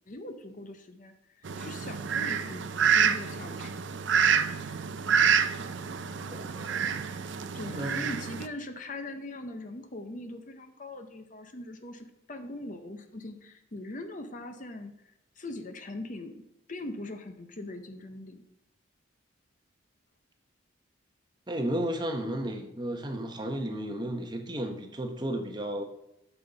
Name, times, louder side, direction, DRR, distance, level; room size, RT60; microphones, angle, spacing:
voice 1, 0.1-3.9 7.5-16.3 16.7-18.4, left 2 dB, 40° left, 7 dB, 0.7 m, -41 dB
Fowl, 1.4-8.5, right 7 dB, 65° right, 0.5 m, -28 dB
voice 2, 6.3-7.1 7.7-8.0 21.5-25.8, right 1 dB, 20° right, 4 dB, 0.8 m, -33 dB
9.1 x 7.0 x 4.0 m, 0.84 s
head